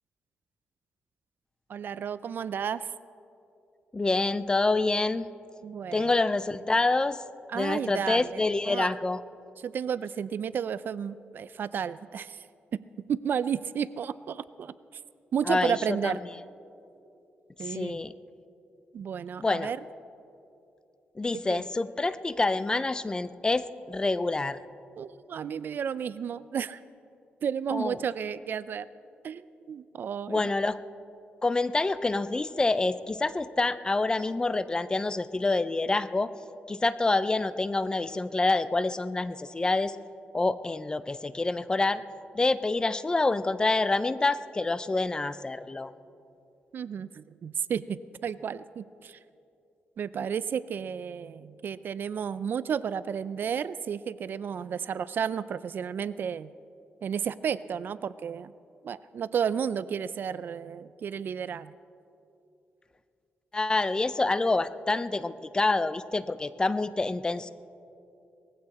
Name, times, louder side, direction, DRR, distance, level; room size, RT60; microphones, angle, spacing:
voice 1, 1.7-2.9 5.6-6.1 7.5-8.9 9.6-12.5 12.7-12.8 13.1-14.7 15.3-16.2 17.6-18.0 18.9-19.8 21.5-21.6 25.0-26.8 27.4-28.9 29.2-30.5 46.7-49.2 50.0-56.5 57.0-58.5 58.8-61.7, right 7 dB, 60° right, 16 dB, 0.4 m, -32 dB
voice 2, 3.9-5.3 5.9-7.2 7.5-9.2 15.5-15.8 16.0-16.2 17.6-18.1 19.4-19.7 21.2-24.6 27.7-28.0 30.3-30.8 31.4-36.3 36.7-40.0 40.3-42.0 42.3-45.9 63.5-67.5, left 3 dB, 20° left, 14 dB, 0.5 m, -27 dB
19.5 x 15.0 x 4.2 m, 2.7 s
cardioid pair, 105°, 4 cm